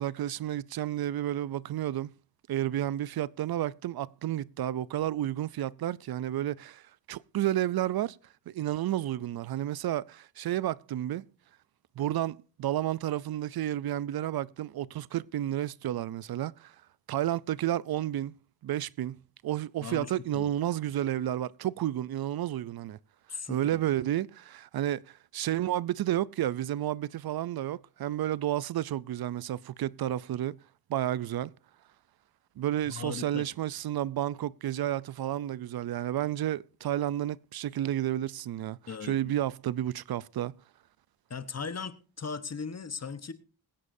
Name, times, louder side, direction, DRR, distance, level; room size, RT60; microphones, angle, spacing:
voice 1, 0.0-2.1 2.5-8.2 8.5-11.2 12.0-16.8 17.1-18.3 18.6-23.0 23.5-30.6 30.9-31.5 32.6-40.5, right 12 dB, 65° right, 0.5 m, -31 dB
voice 2, 19.8-20.5 23.3-23.8 32.9-33.5 38.9-39.3 41.3-43.3, left 5 dB, 40° left, 1.1 m, -38 dB
21.5 x 9.8 x 2.6 m
cardioid pair, 65°, 40 cm